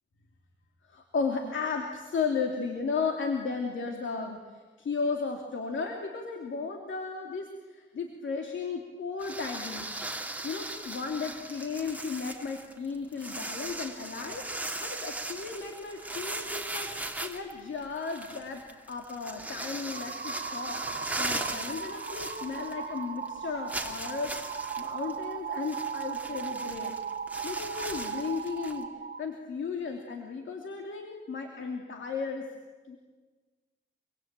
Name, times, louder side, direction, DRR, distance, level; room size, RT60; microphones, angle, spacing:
voice 1, 0.8-9.9 10.4-14.4 14.8-16.9 17.2-18.6 18.9-26.9 27.4-28.9 29.2-32.5 32.9-33.0, left 5 dB, 80° left, 3 dB, 2.8 m, -35 dB
sound 1, 9.2-23.0 23.3-23.4 23.7-28.8, right 2 dB, 10° right, 2.5 m, -38 dB
sound 2, 19.9-29.2, right 7 dB, 50° right, 1.2 m, -37 dB
26.0 x 24.0 x 9.0 m, 1.4 s
wide cardioid pair, 110°, 20 cm